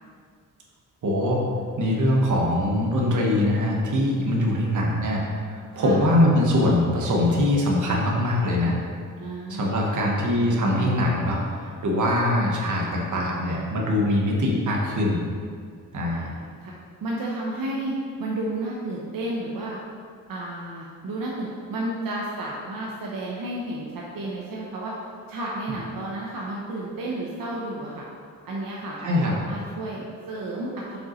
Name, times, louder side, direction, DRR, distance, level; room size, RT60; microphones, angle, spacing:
voice 1, 1.0-1.4 1.8-5.2 5.5-8.8 9.5-15.2 15.9-16.3 29.0-29.3, left 1 dB, 60° right, -2 dB, 1.2 m, -22 dB
voice 2, 9.2-9.9 16.1-16.7 17.0-19.8 20.3-24.9 25.3-28.0 28.4-31.0, right 1 dB, 80° right, -4 dB, 0.9 m, -32 dB
6.8 x 5.2 x 3.1 m, 2.1 s
wide cardioid pair, 175°, 33 cm